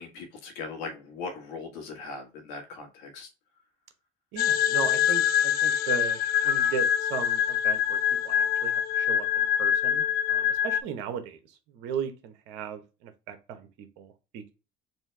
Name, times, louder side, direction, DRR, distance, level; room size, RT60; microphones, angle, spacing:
voice 1, 0.0-3.3, left 4 dB, 80° left, 2 dB, 1.8 m, -39 dB
voice 2, 4.3-14.5, right 8 dB, 75° right, 8 dB, 1.0 m, -37 dB
sound 1, 4.4-10.8, left 10 dB, 60° left, 0.4 m, -25 dB
4.4 x 2.7 x 3.3 m, 0.29 s
supercardioid pair, 95°, 17 cm